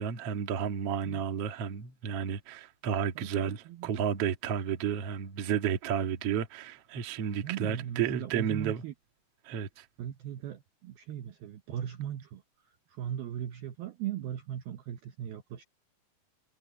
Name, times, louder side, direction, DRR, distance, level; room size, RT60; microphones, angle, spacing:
voice 1, 0.0-8.8 9.4-9.8, right 8 dB, 60° right, 1.6 m, -32 dB
voice 2, 3.2-3.9 7.4-8.9 10.0-12.4 12.9-15.6, right 10 dB, 75° right, 2.3 m, -38 dB
omnidirectional pair, 5.7 m